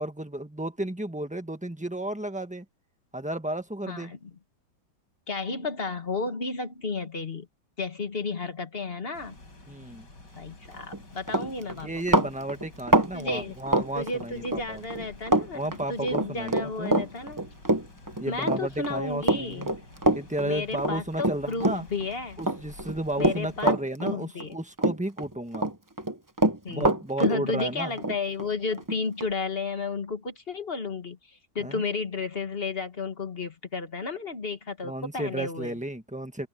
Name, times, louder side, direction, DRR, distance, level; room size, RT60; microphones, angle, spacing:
voice 1, 0.0-2.6 3.1-4.1 9.7-10.1 11.4-11.5 11.8-14.9 15.5-17.0 18.2-19.7 20.1-21.9 22.4-25.7 26.7-27.9 31.6-31.8 34.8-36.5, right 1 dB, 5° right, 1.2 m, -33 dB
voice 2, 3.9-4.2 5.3-7.5 7.8-9.3 10.4-12.3 13.1-13.5 13.9-17.4 18.3-19.7 20.4-22.4 23.2-23.7 24.0-24.6 26.6-26.9 27.2-31.2 31.5-35.7, left 3 dB, 30° left, 1.6 m, -32 dB
sound 1, 9.1-23.7, left 2 dB, 55° left, 6.9 m, -50 dB
Run, 10.8-11.0 11.3-14.6 14.9-15.5 15.7-22.1 22.4-24.5 24.8-25.7 26.0-29.3, right 1 dB, 25° right, 0.4 m, -25 dB
open air
omnidirectional pair, 2.2 m